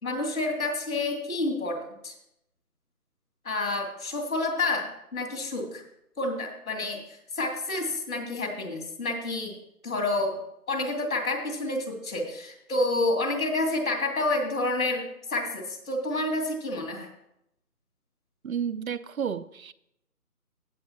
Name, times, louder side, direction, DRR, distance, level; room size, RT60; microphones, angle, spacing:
voice 1, 0.0-2.1 3.4-5.8 6.2-7.0 7.4-9.5 9.8-10.4 10.7-15.0 15.3-17.1, left 2 dB, 65° left, 1 dB, 3.1 m, -29 dB
voice 2, 18.4-19.7, right 7 dB, 65° right, 17 dB, 0.7 m, -31 dB
16.0 x 7.8 x 3.0 m, 0.80 s
figure-of-eight pair, 170°, 45 cm